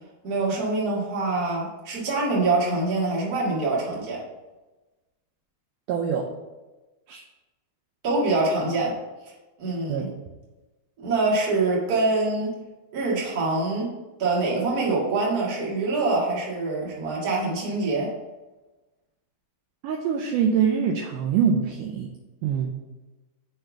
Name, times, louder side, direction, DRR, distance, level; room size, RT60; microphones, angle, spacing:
voice 1, 0.2-4.2 8.0-8.9 9.6-10.1 11.0-12.5 12.9-13.9 14.2-18.1, right 3 dB, 40° right, -5 dB, 1.4 m, -25 dB
voice 2, 5.9-6.3 7.1-7.2 9.9-10.1 19.8-22.1 22.4-22.7, right 7 dB, 85° right, 0 dB, 1.9 m, -24 dB
6.5 x 3.3 x 5.9 m, 1.1 s
omnidirectional pair, 4.3 m